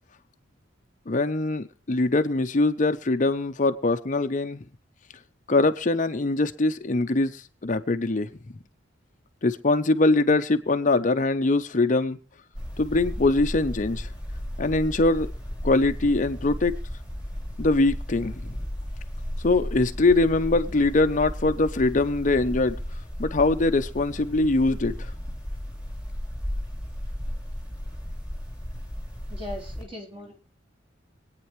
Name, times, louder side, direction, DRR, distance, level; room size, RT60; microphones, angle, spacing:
voice 1, 1.1-4.6 5.5-8.3 9.4-12.2 12.8-14.1 14.6-15.3 15.6-16.7 17.6-18.6 19.4-22.8 23.2-25.1, left 2 dB, 40° left, 0.7 m, -23 dB
sound 1, 12.5-29.8, equal, 5° right, 3.5 m, -34 dB
voice 2, 29.3-30.4, left 1 dB, 25° right, 3.7 m, -38 dB
25.0 x 9.0 x 3.1 m
head